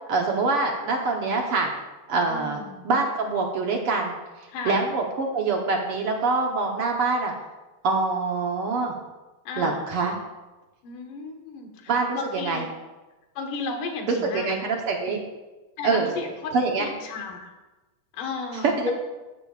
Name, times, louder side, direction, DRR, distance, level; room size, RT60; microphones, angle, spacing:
voice 1, 0.1-1.7 2.1-4.2 4.6-7.3 7.8-8.9 9.6-10.1 11.9-12.2 12.4-12.6 14.1-15.2 15.8-16.2 16.5-16.9 18.6-18.9, right 3 dB, 60° right, 1 dB, 1.5 m, -24 dB
voice 2, 2.3-2.8 4.5-4.9 9.4-9.8 10.8-12.7 13.4-14.7 15.8-16.5 16.8-17.5 18.1-18.9, left 4 dB, 80° left, 2 dB, 3.1 m, -34 dB
14.0 x 12.5 x 2.5 m, 1.1 s
omnidirectional pair, 3.7 m